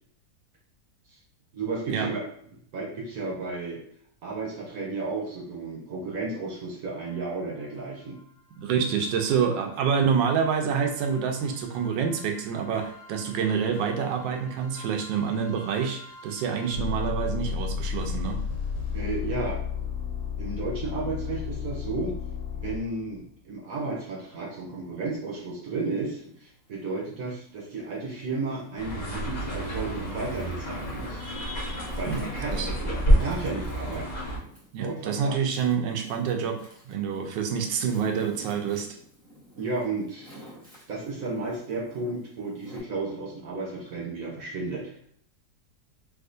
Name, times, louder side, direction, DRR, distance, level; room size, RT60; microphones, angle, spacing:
voice 1, 1.5-2.2 2.7-3.8 4.2-8.2 18.9-19.6 20.4-22.1 22.5-31.2 32.0-34.2 34.8-35.4 39.6-40.5 40.9-44.9, right 3 dB, 60° right, -2 dB, 1.1 m, -33 dB
sound 1, 7.0-7.1 7.8-7.9 8.2-8.3 8.8-23.2, left 7 dB, 80° left, 1.5 m, -35 dB
voice 2, 8.6-18.4 32.1-32.2 32.5-32.7 34.7-38.9, right 7 dB, 85° right, 5 dB, 1.3 m, -27 dB
Wind, 23.6-26.4 26.9-28.2 28.8-42.8, equal, 10° right, 0.4 m, -49 dB
sound 2, 28.8-34.4, right 1 dB, 40° left, 0.6 m, -28 dB
3.5 x 2.7 x 2.5 m, 0.63 s
omnidirectional pair, 1.9 m